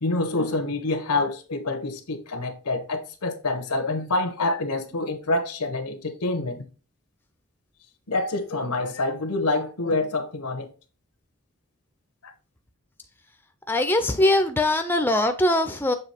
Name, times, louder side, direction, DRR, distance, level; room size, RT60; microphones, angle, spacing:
voice 1, 0.0-6.6 8.1-10.7 12.2-12.3, left 2 dB, 90° left, 1.0 m, -27 dB
voice 2, 13.7-15.9, left 1 dB, 10° left, 0.4 m, -21 dB
7.0 x 3.2 x 4.3 m
head